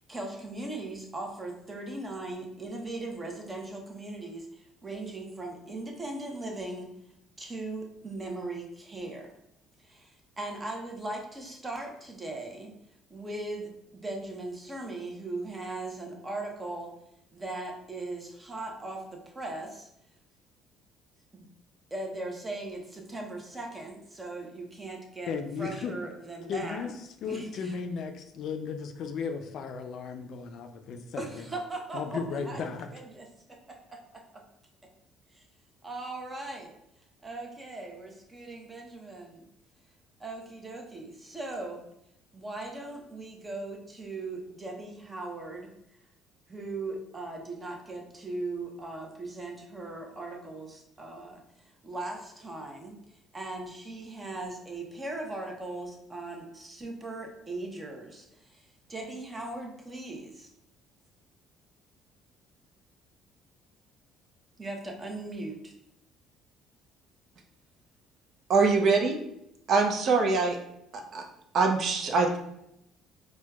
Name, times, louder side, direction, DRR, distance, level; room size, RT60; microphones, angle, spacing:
voice 1, 0.1-6.9 7.4-9.3 9.8-12.7 13.1-16.9 17.3-19.9 21.3-21.5 21.9-25.3 25.6-26.8 27.2-27.8 31.2-32.6 32.9-33.2 33.7-34.4 35.3-35.4 35.8-36.7 37.2-39.4 40.2-41.8 42.3-45.7 46.5-51.4 51.8-53.0 53.3-60.5 64.6-65.7, right 2 dB, 20° right, 1 dB, 0.7 m, -39 dB
voice 2, 25.3-25.9 26.5-26.9 27.2-31.5 31.9-32.9, left 6 dB, 65° left, 6 dB, 0.3 m, -35 dB
voice 3, 68.5-69.2 69.7-70.6 70.9-71.2 71.5-72.4, right 4 dB, 55° right, 3 dB, 0.5 m, -23 dB
4.3 x 2.2 x 2.3 m, 0.79 s
cardioid pair, 90°, 0 cm